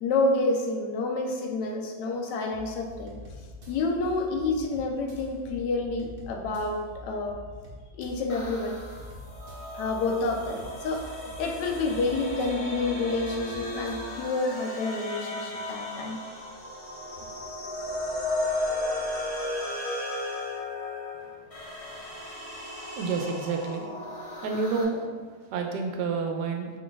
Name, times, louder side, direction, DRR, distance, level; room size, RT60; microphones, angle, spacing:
voice 1, 0.0-3.1 3.7-7.4 8.0-8.8 9.7-16.2, left 3 dB, 90° left, 3 dB, 1.2 m, -29 dB
sound 1, 2.5-14.2, left 1 dB, 50° right, 0.7 m, -45 dB
sound 2, 8.3-24.8, left 1 dB, 60° left, 0.3 m, -35 dB
voice 2, 23.0-23.9 24.4-25.1 25.5-26.7, right 4 dB, 85° right, 4 dB, 1.2 m, -29 dB
4.9 x 2.4 x 3.8 m, 1.5 s
omnidirectional pair, 1.8 m